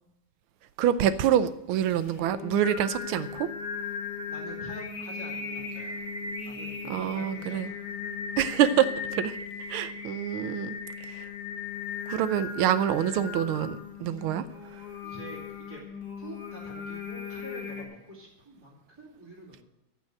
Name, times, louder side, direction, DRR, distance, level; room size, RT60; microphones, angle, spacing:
voice 1, 0.8-3.5 6.9-7.7 8.4-9.4 9.7-11.3 12.1-14.4, right 10 dB, 85° right, 13 dB, 1.5 m, -26 dB
Singing, 1.9-17.8, left 5 dB, 50° left, 1.9 m, -37 dB
voice 2, 4.3-6.2 6.4-7.8 15.0-15.8 16.2-19.6, right 2 dB, 10° right, -7 dB, 2.5 m, -46 dB
14.5 x 5.4 x 8.9 m, 0.92 s
omnidirectional pair, 2.3 m